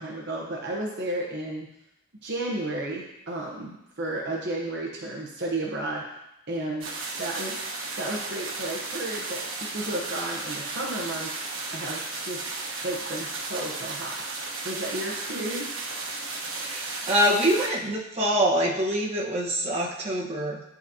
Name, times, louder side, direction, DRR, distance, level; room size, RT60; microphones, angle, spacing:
voice 1, 0.0-1.7 2.2-6.0 6.5-6.9 7.2-7.6 8.0-11.3 11.7-12.4 12.8-14.2 14.6-15.7, right 1 dB, 50° right, -2 dB, 0.9 m, -32 dB
sound 1, 6.8-17.7, right 3 dB, 70° right, 1.2 m, -34 dB
voice 2, 16.6-20.6, equal, 30° right, -5 dB, 1.1 m, -25 dB
11.0 x 4.0 x 2.8 m, 0.85 s
head